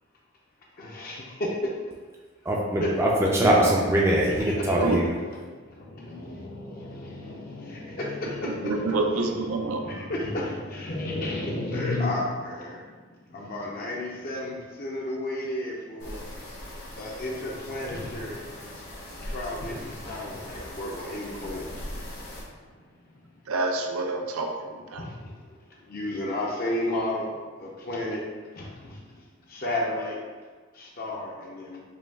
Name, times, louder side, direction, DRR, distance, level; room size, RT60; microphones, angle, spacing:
voice 1, 0.8-1.6 2.8-2.9 4.6-4.7 5.2-5.3 5.7-12.9 13.3-16.3 16.9-18.5 19.2-21.7 22.0-22.1 25.0-25.4 25.9-27.3 27.6-28.2 28.5-29.0 29.5-30.2 30.7-31.8, left 1 dB, 45° left, -3 dB, 0.6 m, -32 dB
voice 2, 2.5-5.1, right 1 dB, 15° right, -4 dB, 0.4 m, -22 dB
voice 3, 8.4-9.9 23.5-25.1, right 3 dB, 90° right, 3 dB, 0.5 m, -27 dB
sound 1, 16.0-22.4, left 1 dB, 85° left, 1.4 m, -40 dB
5.0 x 2.3 x 3.4 m, 1.5 s
head